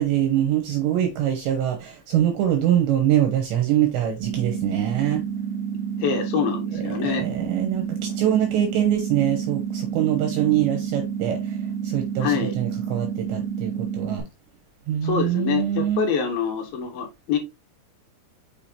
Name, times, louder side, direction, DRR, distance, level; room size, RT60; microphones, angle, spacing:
voice 1, 0.0-5.2 6.7-11.6 11.8-14.2 14.9-16.1, right 11 dB, 75° right, 2.8 m, -24 dB
sound 1, 4.2-14.2, right 8 dB, 60° right, 2.1 m, -29 dB
voice 2, 6.0-7.3 12.2-12.5 15.0-17.4, left 6 dB, 75° left, 2.2 m, -25 dB
6.9 x 5.7 x 2.8 m
omnidirectional pair, 5.8 m